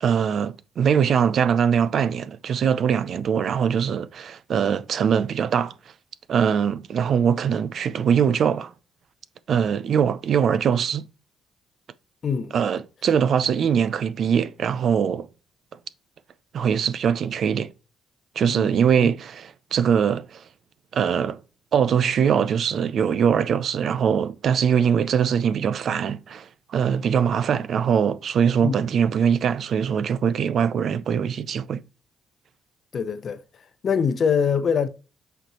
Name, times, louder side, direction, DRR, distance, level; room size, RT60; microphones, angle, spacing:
voice 1, 0.0-5.7 6.3-8.7 9.5-11.0 12.5-15.3 16.5-17.7 18.4-20.4 20.9-21.4 21.7-31.8, right 7 dB, 60° right, 0.6 m, -22 dB
voice 2, 12.2-12.5 18.5-18.6 19.0-19.1 28.6-28.8 32.9-33.4 33.8-34.9, left 6 dB, 50° left, 0.8 m, -23 dB
8.0 x 4.5 x 3.0 m
cardioid pair, 90°, 0 cm